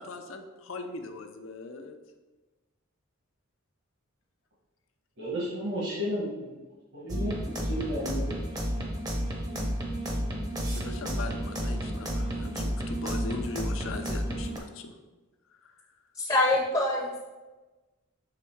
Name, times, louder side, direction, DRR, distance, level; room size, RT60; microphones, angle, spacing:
voice 1, 0.0-1.9 10.7-14.9, left 3 dB, 75° left, 5 dB, 0.6 m, -40 dB
voice 2, 5.2-6.6 6.9-8.4, equal, 55° right, -7 dB, 1.4 m, -33 dB
sound 1, 7.1-14.6, equal, 20° right, 0.8 m, -31 dB
voice 3, 16.2-17.2, left 2 dB, 20° left, -2 dB, 0.7 m, -25 dB
6.7 x 3.6 x 4.5 m, 1.2 s
head